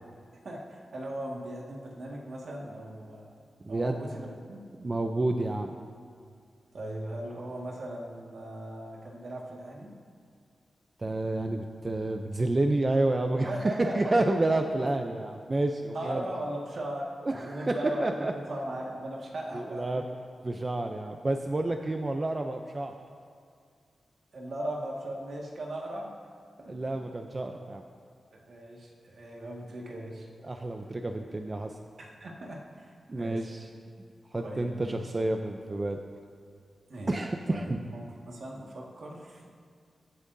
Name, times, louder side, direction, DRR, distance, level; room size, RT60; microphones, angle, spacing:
voice 1, 0.4-3.4 3.7-4.6 6.7-9.9 13.5-14.3 15.9-20.1 24.3-26.1 26.6-26.8 28.3-30.3 32.0-33.5 34.4-35.1 36.9-37.2 37.5-39.5, right 1 dB, 65° right, -2 dB, 1.8 m, -38 dB
voice 2, 3.6-4.0 4.8-5.8 11.0-16.2 17.3-18.3 19.5-20.0 20.4-22.9 26.6-27.8 30.4-31.8 33.1-33.7 34.3-36.0 37.1-37.8, right 2 dB, 30° right, 5 dB, 0.5 m, -29 dB
22.5 x 8.2 x 2.7 m, 2.2 s
wide cardioid pair, 105°, 0 cm